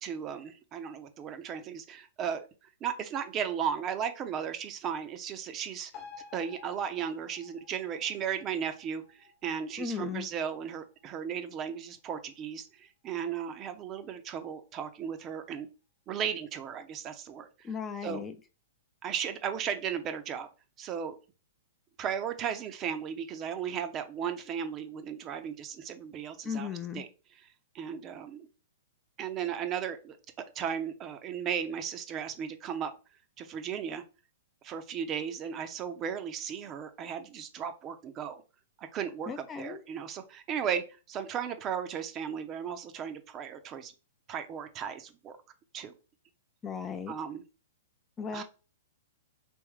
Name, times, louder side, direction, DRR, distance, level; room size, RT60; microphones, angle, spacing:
voice 1, 0.0-2.4 2.8-5.9 6.3-15.7 16.1-17.5 18.0-18.2 19.0-20.5 20.8-21.2 22.0-26.7 26.9-27.1 27.7-28.5 29.2-32.9 33.4-34.0 34.6-38.4 38.8-43.9 44.3-45.4 45.7-45.9 47.1-47.4 48.3-48.4, right 8 dB, 30° right, 8 dB, 0.6 m, -35 dB
sound 1, 5.9-12.9 13.2-13.3, left 6 dB, 40° left, 1.1 m, -54 dB
voice 2, 9.8-10.3 17.6-18.4 26.4-27.0 39.3-39.8 46.6-47.1 48.2-48.4, left 6 dB, 20° left, 8 dB, 0.5 m, -36 dB
3.5 x 3.1 x 3.1 m, 0.32 s
hypercardioid pair, 120°, 0 cm